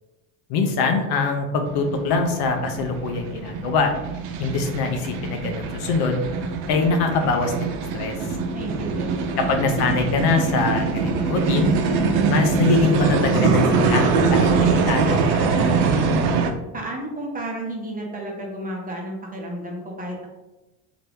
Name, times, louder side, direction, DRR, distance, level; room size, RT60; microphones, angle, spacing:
voice 1, 0.5-3.9 4.4-6.2 6.7-8.4 9.4-11.7 12.3-15.2 15.5-15.7, left 4 dB, 60° left, 4 dB, 0.6 m, -23 dB
sound 1, 1.7-16.5, right 4 dB, 55° right, 0.6 m, -23 dB
voice 2, 8.5-9.5 16.7-20.3, right 1 dB, 20° right, -1 dB, 0.8 m, -32 dB
2.8 x 2.5 x 3.3 m, 1.0 s
hypercardioid pair, 85°, 45 cm